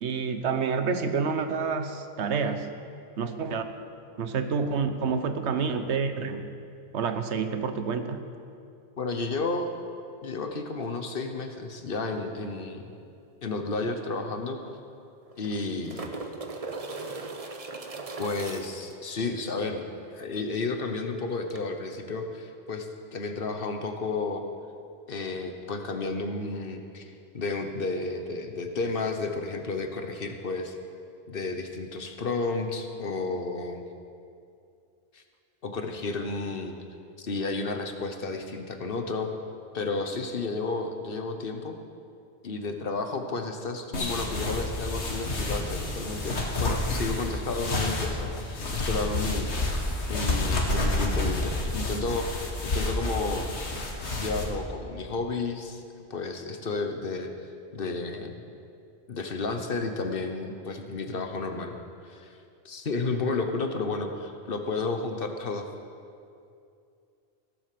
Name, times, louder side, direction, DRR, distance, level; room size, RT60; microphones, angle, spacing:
voice 1, 0.0-2.7 3.2-3.6 4.2-6.5 6.9-8.2, right 5 dB, 90° right, 8 dB, 1.2 m, -28 dB
voice 2, 9.0-9.7 10.2-12.8 13.4-14.6 15.4-16.2 18.2-19.8 20.1-24.4 25.1-30.8 31.3-33.8 35.1-35.2 35.6-36.8 37.2-39.3 39.7-41.7 42.4-49.5 50.1-53.5 54.2-55.8 56.1-57.3 57.7-58.3 59.1-61.8 62.0-62.4 62.6-65.7, left 3 dB, 55° left, 6 dB, 1.2 m, -32 dB
sound 1, 13.7-13.8 14.1-14.2 15.2-18.9 21.5-21.6, right 3 dB, 35° right, 0.8 m, -38 dB
sound 2, 43.9-54.4, left 2 dB, 80° left, 1.8 m, -29 dB
16.5 x 7.6 x 6.7 m, 2.5 s
omnidirectional pair, 1.1 m